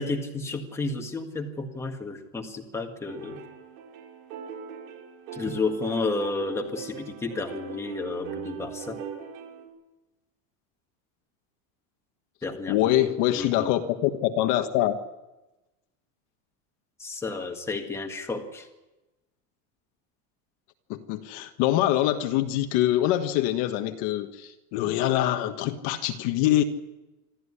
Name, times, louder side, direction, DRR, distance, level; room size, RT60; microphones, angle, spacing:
voice 1, 0.0-3.4 5.3-9.0 12.4-13.0 13.4-13.7 17.0-18.7, left 3 dB, 5° left, 2 dB, 1.8 m, -31 dB
sound 1, 3.1-9.7, right 7 dB, 85° right, 6.8 m, -40 dB
voice 2, 12.7-15.0 20.9-26.6, left 13 dB, 45° left, 6 dB, 1.5 m, -24 dB
26.5 x 13.5 x 9.9 m, 1.0 s
cardioid pair, 175°, 40 cm